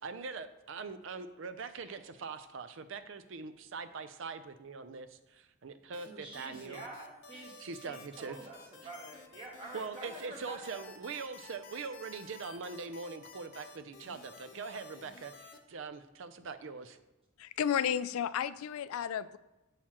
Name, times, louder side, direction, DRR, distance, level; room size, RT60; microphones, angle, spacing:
voice 1, 0.0-6.8 7.4-8.4 9.7-17.0, right 4 dB, 65° right, 11 dB, 0.5 m, -42 dB
sound 1, 5.9-15.6, left 4 dB, 55° left, 0.7 m, -53 dB
voice 2, 6.1-10.8, right 1 dB, 25° right, -3 dB, 1.1 m, -48 dB
voice 3, 17.4-19.4, left 8 dB, 85° left, 16 dB, 0.3 m, -32 dB
7.1 x 6.5 x 3.0 m, 1.0 s
head